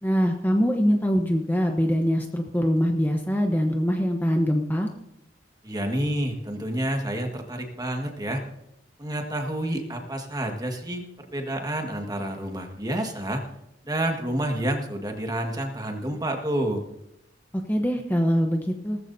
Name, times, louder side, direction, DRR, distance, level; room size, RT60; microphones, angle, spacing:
voice 1, 0.0-4.9 17.7-19.0, equal, 10° left, 3 dB, 1.0 m, -23 dB
voice 2, 5.6-8.4 9.0-13.4 13.8-16.8, right 1 dB, 20° right, 3 dB, 1.7 m, -29 dB
18.5 x 14.0 x 2.7 m, 0.83 s
head